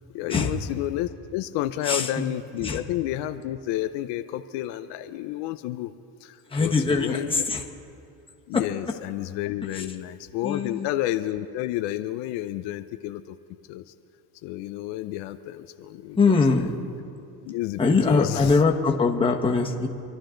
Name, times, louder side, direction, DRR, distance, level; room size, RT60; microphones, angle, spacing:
voice 1, 0.1-5.9 6.2-7.4 8.5-13.4 13.7-13.8 14.4-16.4 17.4-18.5, left 14 dB, 70° left, 9 dB, 0.7 m, -30 dB
voice 2, 6.5-7.6 8.5-8.6 9.7-9.8 10.4-10.9 16.2-16.8 17.8-19.9, left 4 dB, 10° left, 0 dB, 1.4 m, -22 dB
27.0 x 11.0 x 3.9 m, 2.6 s
cardioid pair, 120°, 43 cm